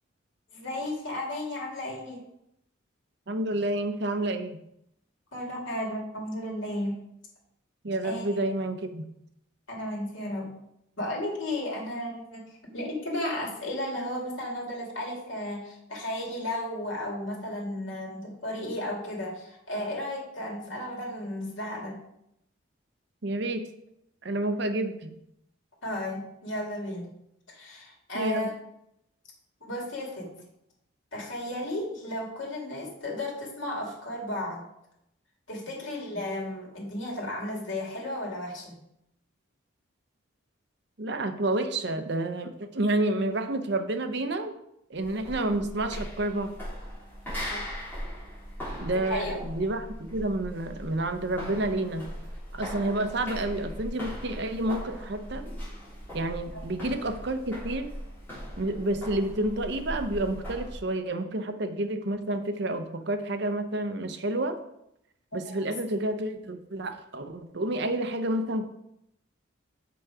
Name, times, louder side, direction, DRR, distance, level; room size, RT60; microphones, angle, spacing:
voice 1, 0.5-2.2 5.3-6.9 8.0-8.3 9.7-10.5 11.0-22.0 25.8-27.1 27.5-28.5 29.6-30.3 31.1-34.6 35.5-38.7 47.5-47.7 49.0-49.4 56.5-56.6 65.3-65.6, left 1 dB, 70° left, -2 dB, 2.5 m, -34 dB
voice 2, 3.3-4.6 7.8-9.0 23.2-23.7 24.2-25.1 28.1-28.5 41.0-44.5 44.9-46.6 48.8-52.0 52.5-55.5 56.1-57.9 58.6-64.6 65.3-68.6, right 1 dB, 55° right, 7 dB, 0.7 m, -29 dB
sound 1, 45.0-60.8, equal, 10° left, 3.5 m, -39 dB
7.0 x 6.1 x 4.8 m, 0.78 s
head